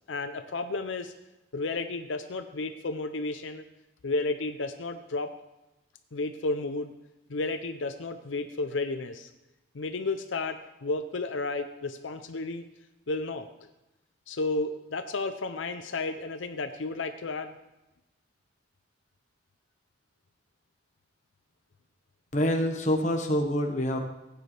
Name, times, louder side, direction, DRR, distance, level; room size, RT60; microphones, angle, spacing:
voice 1, 0.1-1.1 1.5-3.6 4.0-5.3 6.1-6.9 7.3-9.3 9.7-12.6 13.1-13.5 14.3-17.5, left 3 dB, 85° left, 8 dB, 0.6 m, -32 dB
voice 2, 22.3-24.0, equal, 40° left, 4 dB, 1.2 m, -26 dB
16.0 x 9.1 x 3.4 m, 0.99 s
head